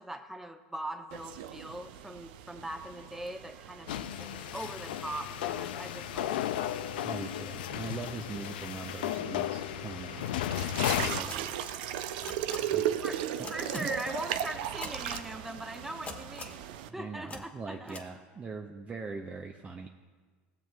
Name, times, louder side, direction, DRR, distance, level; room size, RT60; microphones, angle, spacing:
voice 1, 0.0-6.5 13.0-13.2 13.5-18.0, right 1 dB, 5° right, 5 dB, 1.0 m, -41 dB
sound 1, 1.1-16.9, right 11 dB, 75° right, 0.5 m, -38 dB
sound 2, 3.9-11.3, left 12 dB, 80° left, 0.4 m, -34 dB
voice 2, 7.0-11.8 12.7-13.0 13.4-13.9 16.9-19.9, right 4 dB, 25° right, 3 dB, 0.6 m, -42 dB
sound 3, 11.0-11.3 12.2-12.6 13.4-13.8 14.8-15.3 16.1-16.6 17.3-17.4 17.9-18.0, left 4 dB, 30° left, 1.4 m, -41 dB
20.0 x 7.3 x 2.4 m, 1.5 s
hypercardioid pair, 90°, 5 cm